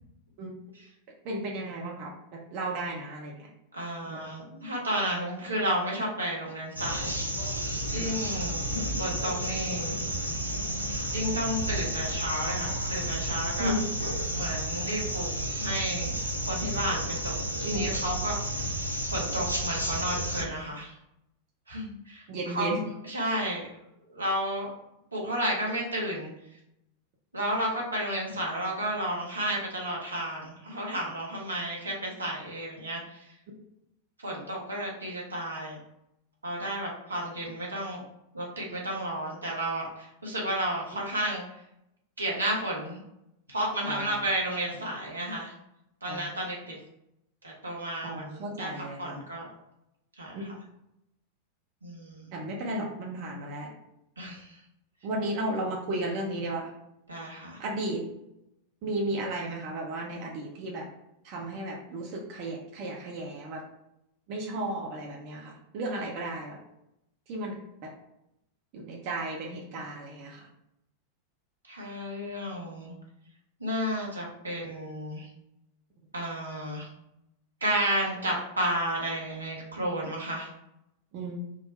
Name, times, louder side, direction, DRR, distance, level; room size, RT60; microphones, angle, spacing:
voice 1, 1.2-3.5 4.1-4.2 13.6-14.0 17.6-17.9 22.3-22.8 43.9-44.1 46.1-46.3 48.0-49.2 50.3-50.6 52.3-53.7 55.0-56.7 57.6-58.0 58.8-60.9 61.2-63.6 64.3-66.6 67.3-67.9 68.7-70.5 81.1-81.4, right 1 dB, 45° right, -1 dB, 0.7 m, -34 dB
voice 2, 3.7-7.2 7.9-8.6 9.0-10.0 11.1-13.7 14.3-15.3 15.6-16.2 16.5-18.7 19.1-20.9 21.7-22.7 23.1-23.7 24.1-24.7 25.1-26.3 27.3-33.3 34.2-35.8 36.4-38.0 38.3-41.4 42.2-43.0 43.5-45.5 46.0-46.8 47.4-49.5 50.2-50.5 51.8-52.3 54.2-54.6 57.1-57.6 71.7-72.9 73.6-75.3 76.1-76.9 77.6-80.5, right 1 dB, 80° right, -3 dB, 0.9 m, -32 dB
sound 1, 6.8-20.4, right 1 dB, 85° left, 0.5 m, -31 dB
3.7 x 2.1 x 4.2 m, 0.82 s
figure-of-eight pair, 90°, 0 cm